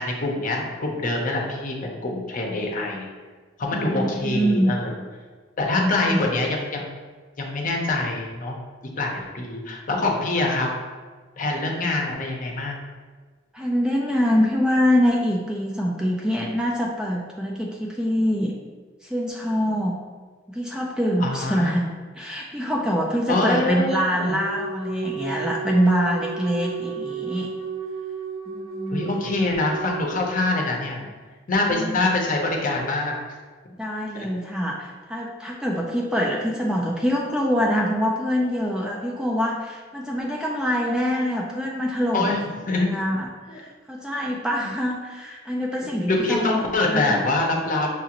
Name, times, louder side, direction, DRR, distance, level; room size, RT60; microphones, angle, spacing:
voice 1, 0.0-3.1 3.6-4.9 5.6-6.9 7.4-8.6 9.0-10.7 11.4-12.8 21.2-21.8 23.3-24.3 28.9-31.1 31.5-33.2 34.1-34.3 42.1-43.0 43.5-43.6 44.6-44.7 46.1-47.9, left 2 dB, 45° left, 0 dB, 0.7 m, -25 dB
voice 2, 3.7-4.7 5.8-6.2 13.5-18.5 19.0-20.0 20.5-21.8 22.2-27.5 28.5-29.0 31.7-32.0 33.8-42.4 42.9-47.2, equal, 5° right, -2 dB, 0.3 m, -24 dB
Wind instrument woodwind instrument, 24.2-30.3, right 5 dB, 50° right, 0.7 m, -33 dB
6.1 x 2.4 x 2.9 m, 1.4 s
head